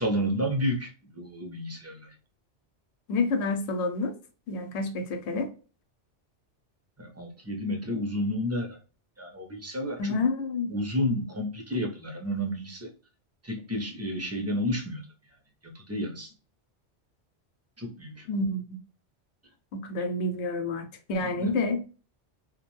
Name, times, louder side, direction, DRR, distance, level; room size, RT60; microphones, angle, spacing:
voice 1, 0.0-2.1 7.0-8.8 9.2-10.2 10.7-12.9 13.4-15.0 15.6-16.3 17.8-18.3 21.2-21.5, equal, 20° right, 0.4 m, -31 dB
voice 2, 3.1-4.1 4.5-5.5 10.0-10.8 18.3-18.6 19.7-21.8, left 3 dB, 75° left, 0.8 m, -28 dB
2.5 x 2.2 x 3.1 m
omnidirectional pair, 1.2 m